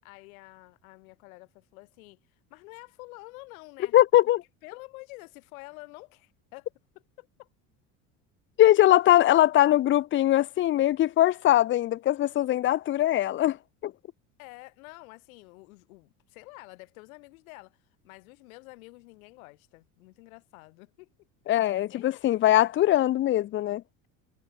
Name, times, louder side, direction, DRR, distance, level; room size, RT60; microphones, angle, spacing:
voice 1, 0.0-4.0 4.6-6.7 7.2-7.5 8.9-9.0 14.4-17.8 18.0-21.3 21.9-22.2, left 24 dB, 75° left, 7.9 m, -48 dB
voice 2, 3.9-4.4 8.6-13.6 13.8-13.9 21.5-23.8, left 13 dB, 30° left, 0.4 m, -21 dB
hypercardioid pair, 75°, 42 cm